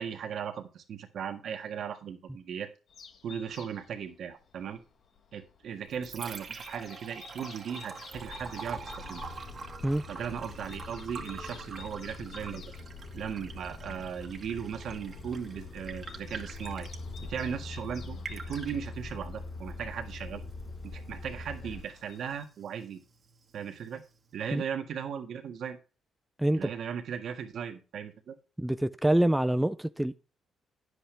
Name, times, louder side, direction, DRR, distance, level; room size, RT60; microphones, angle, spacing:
voice 1, 0.0-2.7 3.2-4.8 5.3-9.2 10.1-12.6 13.1-16.9 17.2-20.4 20.8-23.0 23.5-24.0 24.3-25.8 26.5-28.4, right 7 dB, 65° right, 1.7 m, -37 dB
sound 1, 2.9-22.5, left 6 dB, 60° left, 1.5 m, -55 dB
Liquid, 5.7-24.7, right 4 dB, 40° right, 1.8 m, -47 dB
sound 2, 8.1-21.8, left 3 dB, 45° left, 4.3 m, -43 dB
voice 2, 26.4-26.7 28.6-30.2, right 1 dB, 5° right, 0.5 m, -26 dB
10.0 x 8.1 x 3.4 m
cardioid pair, 90°, 0 cm